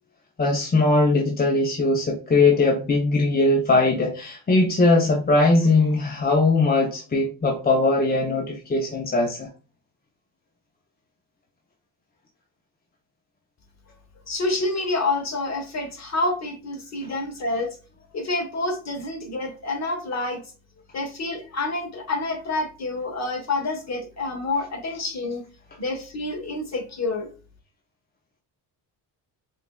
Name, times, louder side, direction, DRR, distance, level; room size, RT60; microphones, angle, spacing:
voice 1, 0.4-9.5 17.0-17.1, left 2 dB, 20° left, 0.6 m, -20 dB
voice 2, 14.3-17.8 18.1-20.4 20.9-25.4 25.8-27.3, left 2 dB, 40° left, 1.2 m, -28 dB
5.2 x 2.4 x 2.2 m
cardioid pair, 90°, 43 cm